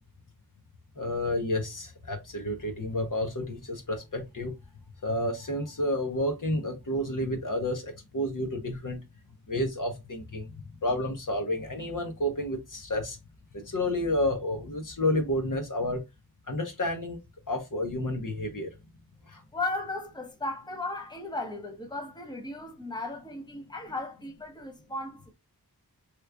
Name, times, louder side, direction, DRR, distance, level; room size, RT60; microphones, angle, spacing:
voice 1, 1.0-4.5 5.0-9.0 9.5-10.5 10.8-13.2 13.5-16.0 16.5-17.2 17.5-18.7 19.3-19.4, left 1 dB, 55° left, 1.0 m, -30 dB
voice 2, 19.5-25.3, left 2 dB, 10° left, 0.9 m, -36 dB
3.1 x 2.4 x 3.3 m
cardioid pair, 45°, 39 cm